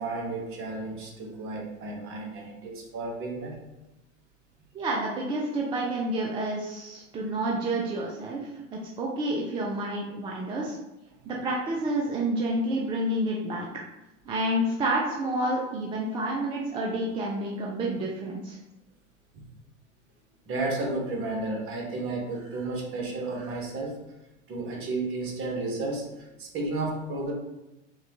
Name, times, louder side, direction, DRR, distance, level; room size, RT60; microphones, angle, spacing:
voice 1, 0.0-3.6 19.3-19.4 20.5-24.0 24.5-27.3, right 2 dB, 35° right, 0 dB, 1.0 m, -32 dB
voice 2, 4.7-10.8 11.3-13.7 14.3-18.6, right 1 dB, 15° right, -2 dB, 0.3 m, -29 dB
4.7 x 2.2 x 2.9 m, 0.94 s
figure-of-eight pair, 85°, 38 cm